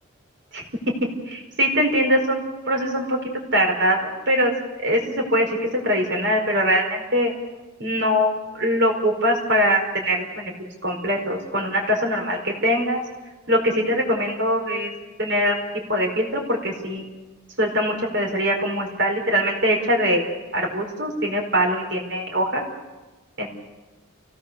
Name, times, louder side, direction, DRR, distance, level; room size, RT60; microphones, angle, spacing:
voice 1, 0.5-0.9 1.3-2.4 2.7-3.2 3.5-4.5 4.8-5.6 5.8-7.3 7.8-10.5 10.8-13.0 13.5-14.9 15.2-15.6 15.9-17.0 17.6-20.3 20.5-22.6 23.4-23.5, equal, 55° right, 1 dB, 4.6 m, -22 dB
29.5 x 18.0 x 6.9 m, 1.2 s
head